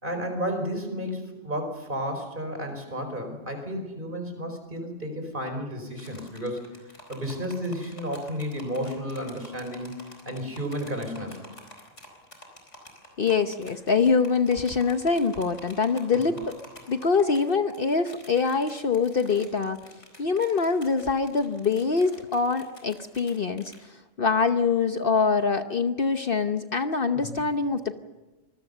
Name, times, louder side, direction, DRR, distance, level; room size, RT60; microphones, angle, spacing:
voice 1, 0.0-10.0 10.2-11.5 16.3-16.4 27.1-27.4, equal, 40° right, 5 dB, 5.0 m, -32 dB
sound 1, 6.0-23.9, left 1 dB, 70° left, 4.7 m, -49 dB
voice 2, 13.2-16.5 16.9-19.8 20.2-23.7 24.2-28.0, left 4 dB, 50° left, 8 dB, 1.1 m, -24 dB
25.5 x 21.0 x 6.9 m, 1.2 s
omnidirectional pair, 1.3 m